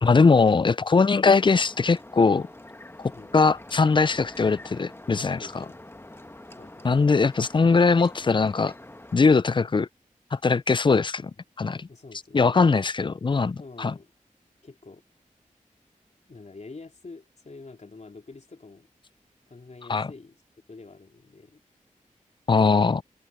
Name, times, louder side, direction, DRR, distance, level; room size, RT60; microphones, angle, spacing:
voice 1, 0.0-2.5 3.3-5.6 6.8-8.7 9.1-9.9 10.3-11.3 11.6-11.9 12.3-13.9 19.9-20.1 22.5-23.0, left 4 dB, 35° left, 0.4 m, -21 dB
sound 1, 1.3-9.2, left 1 dB, 15° left, 1.3 m, -45 dB
voice 2, 5.2-5.8 6.6-6.9 11.9-12.9 13.6-14.1 14.6-15.0 16.3-18.9 19.5-20.4 20.7-21.6 22.7-23.0, left 3 dB, 55° left, 3.5 m, -46 dB
open air
cardioid pair, 55°, 14 cm